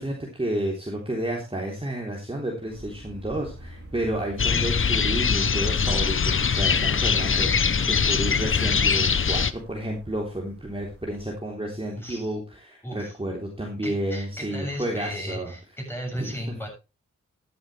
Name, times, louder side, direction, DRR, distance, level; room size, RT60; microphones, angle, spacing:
voice 1, 0.0-15.5 16.2-16.4, right 1 dB, 20° right, -1 dB, 3.4 m, -31 dB
sound 1, 2.7-11.3, right 1 dB, 50° right, 3.8 m, -44 dB
sound 2, 4.4-9.5, left 6 dB, 45° left, 0.7 m, -22 dB
voice 2, 11.9-12.3 12.8-13.1 13.8-16.7, equal, 10° left, 1 dB, 7.4 m, -35 dB
13.0 x 11.5 x 3.3 m, 0.28 s
cardioid pair, 60°, 30 cm